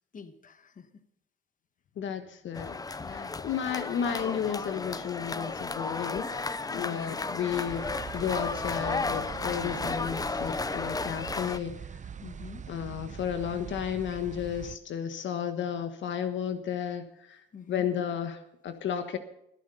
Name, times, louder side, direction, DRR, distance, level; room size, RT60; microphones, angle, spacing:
voice 1, 0.1-1.0 2.9-3.5 12.2-12.7 17.5-17.9, left 6 dB, 40° left, 9 dB, 1.5 m, -47 dB
voice 2, 2.0-11.7 12.7-19.2, left 8 dB, 70° left, 9 dB, 1.3 m, -33 dB
sound 1, 2.5-11.6, left 3 dB, 20° left, 0.7 m, -34 dB
sound 2, 7.6-14.8, right 7 dB, 40° right, 0.8 m, -42 dB
21.5 x 8.0 x 5.5 m, 0.77 s
cardioid pair, 90°, 20 cm